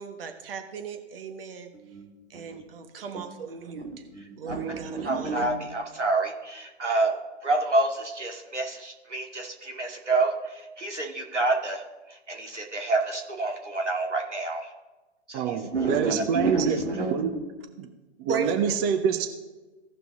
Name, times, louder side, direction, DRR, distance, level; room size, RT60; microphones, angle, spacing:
voice 1, 0.0-1.7 2.3-4.1 4.4-5.5 18.3-18.8, right 6 dB, 55° right, 6 dB, 1.4 m, -37 dB
voice 2, 3.8-7.2 7.4-11.8 12.1-14.7 15.3-17.4, right 3 dB, 85° right, 1 dB, 2.3 m, -28 dB
voice 3, 15.3-16.8 17.1-17.3 17.8-17.9 18.2-19.3, right 7 dB, 20° right, 6 dB, 0.5 m, -26 dB
17.0 x 5.8 x 3.5 m, 1.2 s
figure-of-eight pair, 125°, 34 cm